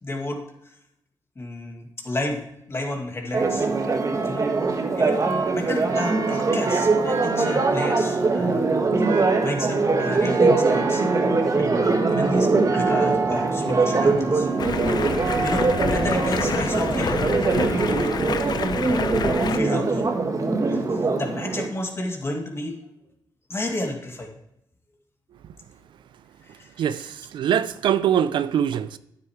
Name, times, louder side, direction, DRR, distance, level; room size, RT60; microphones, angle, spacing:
voice 1, 0.0-0.4 1.4-2.4 2.7-3.7 4.2-4.5 5.0-8.7 9.1-11.0 11.5-14.5 15.4-17.5 17.9-18.1 18.9-20.1 20.7-22.8 23.5-24.3 26.4-26.9, left 1 dB, 30° left, 2.3 m, -32 dB
Church bell, 3.3-21.7, right 3 dB, 40° right, 1.6 m, -22 dB
Stream, 14.6-19.6, left 6 dB, 55° left, 0.7 m, -28 dB
voice 2, 26.8-29.0, right 9 dB, 75° right, 0.5 m, -23 dB
9.2 x 8.3 x 3.2 m
cardioid pair, 70°, 8 cm